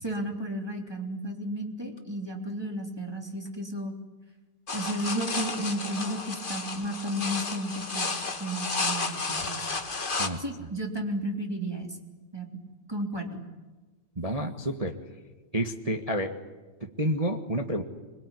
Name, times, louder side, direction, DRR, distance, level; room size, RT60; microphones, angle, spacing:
voice 1, 0.0-3.9 4.7-9.6 10.4-12.0 12.3-12.5 12.9-13.4, right 1 dB, 10° right, 3 dB, 2.9 m, -33 dB
sound 1, 4.7-10.3, left 3 dB, 30° left, 1.0 m, -32 dB
voice 2, 14.2-14.9 15.5-16.3 17.0-17.8, right 1 dB, 40° right, 4 dB, 0.5 m, -29 dB
26.0 x 22.5 x 10.0 m, 1.3 s
omnidirectional pair, 3.6 m